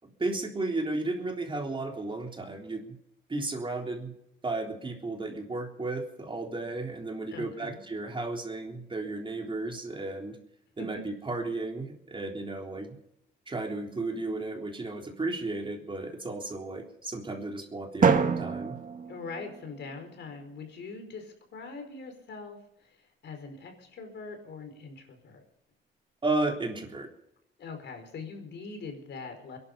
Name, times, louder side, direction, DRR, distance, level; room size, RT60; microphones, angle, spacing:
voice 1, 0.0-3.0 3.3-4.1 4.4-10.4 10.8-12.9 13.5-18.8 26.2-27.1, right 2 dB, 25° right, 2 dB, 3.6 m, -34 dB
voice 2, 7.3-7.8 10.8-11.0 19.1-22.9 23.2-25.4 27.6-29.6, left 4 dB, 65° left, 5 dB, 5.0 m, -42 dB
Drum, 18.0-20.0, right 6 dB, 45° right, 1.9 m, -27 dB
22.0 x 11.5 x 5.7 m, 0.81 s
cardioid pair, 90°, 20 cm